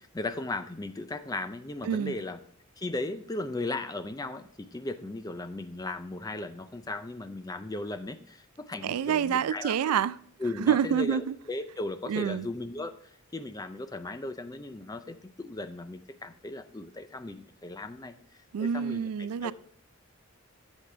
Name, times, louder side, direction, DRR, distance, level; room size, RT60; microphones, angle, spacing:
voice 1, 0.0-2.4 2.8-9.9 10.4-12.9 13.3-18.2 18.6-19.5, left 2 dB, 15° left, 0.4 m, -36 dB
voice 2, 1.8-2.1 8.8-10.2 10.6-11.3 12.1-12.5 18.5-19.5, right 8 dB, 85° right, 0.3 m, -27 dB
8.3 x 7.4 x 3.3 m
head